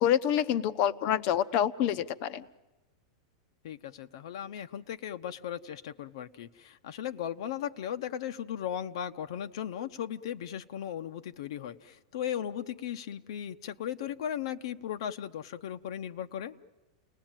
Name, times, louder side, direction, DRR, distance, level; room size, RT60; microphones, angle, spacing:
voice 1, 0.0-2.4, left 10 dB, 35° left, 15 dB, 0.8 m, -27 dB
voice 2, 3.6-16.5, left 10 dB, 60° left, 10 dB, 0.9 m, -37 dB
29.5 x 19.5 x 9.0 m, 1.1 s
supercardioid pair, 170°, 3 cm